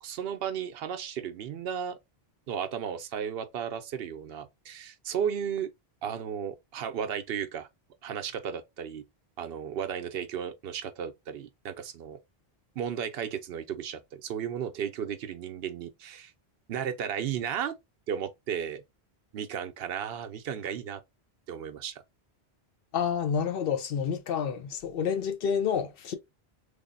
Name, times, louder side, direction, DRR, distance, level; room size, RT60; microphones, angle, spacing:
voice 1, 0.0-2.0 2.5-5.7 6.0-7.7 8.0-9.0 9.4-12.2 12.8-16.3 16.7-17.7 18.1-18.8 19.3-21.0 21.5-22.0, right 8 dB, 75° right, 0.8 m, -34 dB
voice 2, 22.9-26.2, left 7 dB, 70° left, 0.7 m, -29 dB
3.4 x 2.0 x 3.8 m
omnidirectional pair, 1.1 m